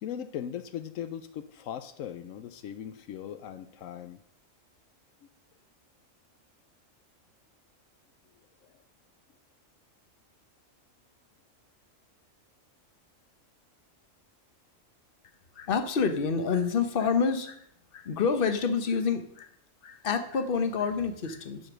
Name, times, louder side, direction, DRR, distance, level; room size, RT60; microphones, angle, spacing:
voice 1, 0.0-4.2 8.6-8.7, left 9 dB, 85° left, 10 dB, 1.0 m, -39 dB
voice 2, 15.6-17.7 17.9-19.5 19.8-21.6, left 5 dB, 45° left, 8 dB, 1.1 m, -28 dB
11.5 x 5.1 x 6.1 m, 0.68 s
omnidirectional pair, 1.4 m